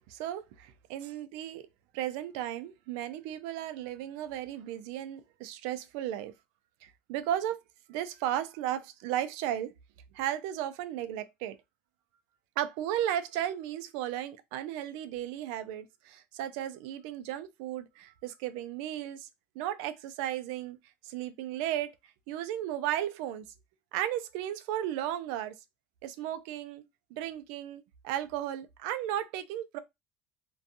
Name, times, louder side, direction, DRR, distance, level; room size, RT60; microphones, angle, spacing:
voice 1, 0.1-1.7 1.9-6.3 6.8-7.6 7.9-9.7 10.1-11.6 12.6-19.3 19.6-20.8 21.0-21.9 22.3-23.4 23.9-25.5 26.0-26.8 27.1-29.8, right 12 dB, 80° right, 0.4 m, -35 dB
2.5 x 2.3 x 2.6 m
cardioid pair, 170°, 4 cm